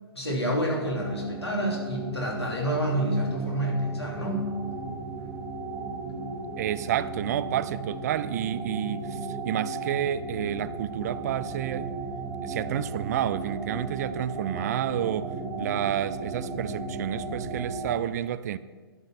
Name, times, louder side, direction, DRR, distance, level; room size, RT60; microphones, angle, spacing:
voice 1, 0.1-4.4, right 1 dB, 90° left, -2 dB, 3.0 m, -28 dB
sound 1, 0.8-17.9, right 3 dB, 15° right, 1.5 m, -35 dB
voice 2, 6.6-11.9 12.4-15.3 15.6-18.6, right 11 dB, 40° right, 16 dB, 0.4 m, -30 dB
12.0 x 5.6 x 5.9 m, 1.5 s
figure-of-eight pair, 125°, 13 cm